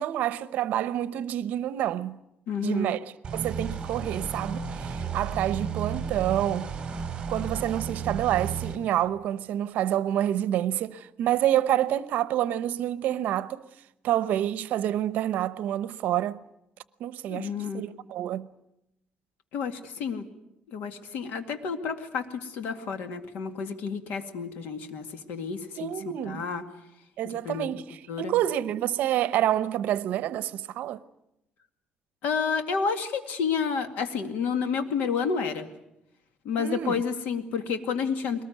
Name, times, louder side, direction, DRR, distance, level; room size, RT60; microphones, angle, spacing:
voice 1, 0.0-2.2 2.6-6.7 7.3-13.6 14.0-16.4 17.0-18.5 25.7-26.5 27.2-31.0 36.6-37.0, right 12 dB, 70° right, 0.8 m, -28 dB
voice 2, 2.5-2.9 17.3-17.9 19.5-20.3 20.7-25.9 26.2-26.6 27.2-27.7 28.1-28.3 32.2-35.7 36.4-38.4, left 6 dB, 80° left, 2.2 m, -30 dB
sound 1, 3.2-8.8, right 6 dB, 25° right, 3.7 m, -33 dB
22.5 x 19.5 x 9.3 m
cardioid pair, 155°, 3 cm